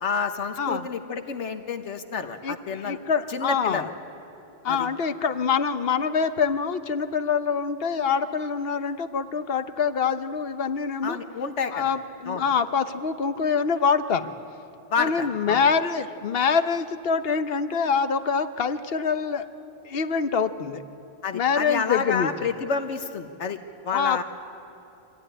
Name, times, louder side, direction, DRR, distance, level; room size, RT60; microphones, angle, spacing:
voice 1, 0.0-3.0 3.3-3.9 4.7-4.9 11.0-11.8 12.3-12.4 14.9-15.6 21.2-23.6 23.8-24.2, left 5 dB, 85° left, 7 dB, 1.4 m, -29 dB
voice 2, 0.6-0.9 2.4-3.9 4.6-11.2 11.7-14.3 15.0-19.4 19.8-20.8 21.3-22.3 23.9-24.2, left 6 dB, 60° left, 9 dB, 1.1 m, -25 dB
24.5 x 15.5 x 10.0 m, 2.9 s
omnidirectional pair, 1.2 m